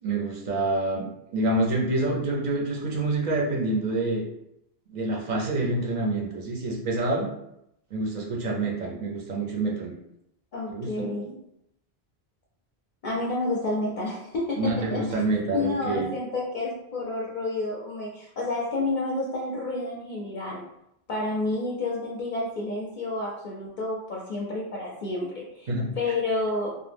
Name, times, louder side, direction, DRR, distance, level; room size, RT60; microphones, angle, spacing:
voice 1, 0.0-4.2 4.9-7.3 7.9-9.9 10.7-11.1 14.6-16.1 25.7-25.8, right 2 dB, 50° right, -1 dB, 0.6 m, -27 dB
voice 2, 10.5-11.4 13.0-15.2 15.5-20.6 21.1-25.7 26.0-26.7, left 2 dB, 60° left, -4 dB, 0.6 m, -30 dB
2.2 x 2.0 x 3.3 m, 0.79 s
omnidirectional pair, 1.1 m